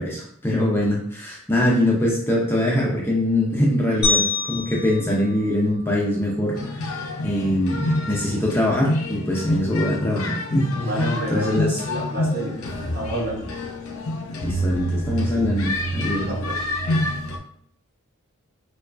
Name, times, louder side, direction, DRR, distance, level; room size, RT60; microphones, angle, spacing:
voice 1, 0.0-10.7 11.3-11.8 14.4-16.3, left 1 dB, 10° left, -3 dB, 0.5 m, -23 dB
sound 1, 4.0-6.4, left 3 dB, 5° right, 0.8 m, -26 dB
sound 2, 6.5-17.4, left 1 dB, 70° left, 0.5 m, -27 dB
voice 2, 10.7-12.5 12.9-13.5 16.3-16.7, right 1 dB, 45° right, -3 dB, 1.0 m, -29 dB
4.5 x 2.3 x 2.4 m, 0.65 s
head